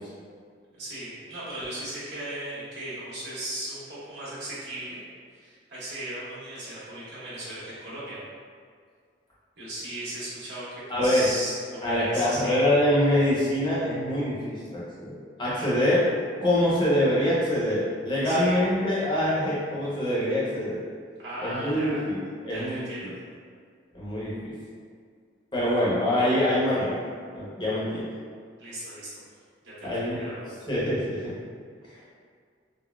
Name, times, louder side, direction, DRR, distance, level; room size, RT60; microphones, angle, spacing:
voice 1, 0.8-5.0 5.3-8.2 9.6-12.6 15.6-15.9 18.2-18.6 21.2-22.0 22.4-23.1 25.6-25.9 28.6-29.1 29.6-30.5, right 1 dB, 65° right, -10 dB, 1.3 m, -37 dB
voice 2, 10.9-11.3 11.8-16.0 16.4-20.8 21.4-23.1 23.9-24.5 25.5-27.0 27.3-28.1 29.8-30.2 30.7-31.3 31.9-32.0, left 1 dB, 25° left, -8 dB, 0.7 m, -25 dB
3.8 x 2.0 x 2.3 m, 2.1 s
head